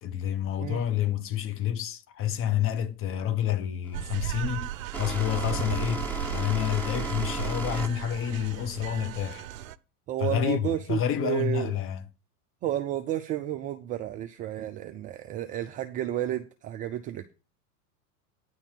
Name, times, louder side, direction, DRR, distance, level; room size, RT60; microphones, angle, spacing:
voice 1, 0.0-4.7 5.0-9.5 10.2-12.0, left 10 dB, 30° left, 1.0 m, -29 dB
sound 1, 3.9-9.7, right 3 dB, 5° left, 1.6 m, -35 dB
sound 2, 3.9-9.8, right 12 dB, 60° right, 0.7 m, -36 dB
voice 2, 10.1-11.7 12.6-17.3, right 12 dB, 20° right, 0.4 m, -31 dB
9.9 x 4.3 x 7.3 m
figure-of-eight pair, 90°, 46 cm